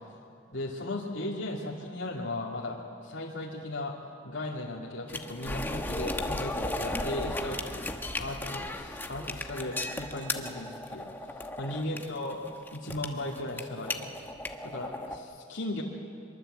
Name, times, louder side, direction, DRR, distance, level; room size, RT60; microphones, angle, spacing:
voice 1, 0.5-4.0 4.2-7.9 8.2-11.1 11.6-12.4 12.7-14.1 14.6-15.8, left 1 dB, 75° left, -5 dB, 2.5 m, -36 dB
sound 1, 5.1-15.2, left 2 dB, 10° left, 1.1 m, -35 dB
24.5 x 22.5 x 8.0 m, 2.4 s
head